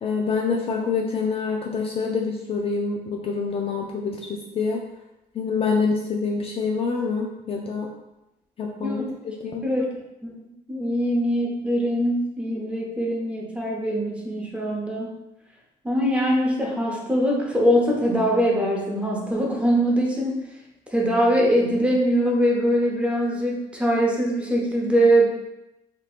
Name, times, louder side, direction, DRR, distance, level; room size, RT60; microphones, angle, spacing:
voice 1, 0.0-4.8 5.3-7.9 8.6-9.0 9.4-9.7, left 4 dB, 35° left, 0 dB, 0.4 m, -26 dB
voice 2, 10.2-15.1 15.8-20.4 20.9-25.3, equal, 5° right, -3 dB, 0.7 m, -22 dB
3.4 x 2.8 x 2.4 m, 0.90 s
cardioid pair, 110°, 17 cm